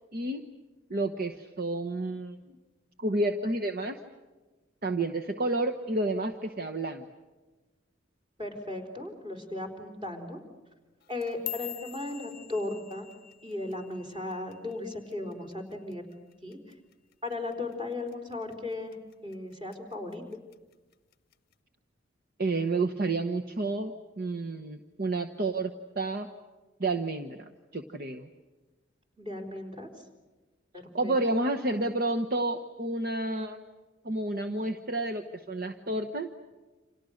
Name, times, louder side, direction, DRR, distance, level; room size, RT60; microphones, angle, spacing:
voice 1, 0.1-0.4 0.9-2.4 3.0-4.0 4.8-7.0 22.4-23.9 24.2-26.3 26.8-28.3 30.9-33.6 34.0-36.3, right 2 dB, 50° right, 5 dB, 1.2 m, -30 dB
voice 2, 8.4-10.4 11.1-13.1 13.4-16.0 16.4-16.6 17.2-19.0 19.2-20.2 29.2-29.9 30.7-31.1, left 2 dB, 25° right, 4 dB, 4.2 m, -36 dB
sound 1, 11.0-15.4 15.7-16.1 16.5-16.9 17.3-17.5 18.1-18.5 18.9-19.7 20.1-20.5 21.3-21.4, left 14 dB, 50° left, 0.8 m, -44 dB
30.0 x 27.0 x 6.5 m, 1.2 s
head